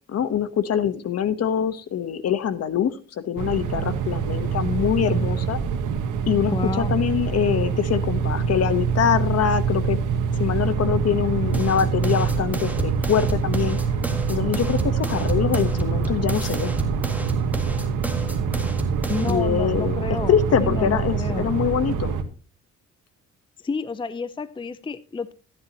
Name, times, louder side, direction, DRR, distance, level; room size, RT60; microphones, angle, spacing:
voice 1, 0.1-5.6 6.3-10.0 10.3-13.8 14.3-16.8 19.3-22.2, left 8 dB, 55° left, 13 dB, 1.1 m, -24 dB
sound 1, 3.4-22.2, right 6 dB, 90° right, 1.5 m, -25 dB
voice 2, 6.5-6.9 19.1-21.5 23.6-25.3, left 4 dB, 15° left, 14 dB, 0.6 m, -30 dB
sound 2, 11.5-19.5, right 1 dB, 5° right, 1.9 m, -32 dB
13.5 x 10.5 x 2.9 m, 0.35 s
cardioid pair, 90°, 30 cm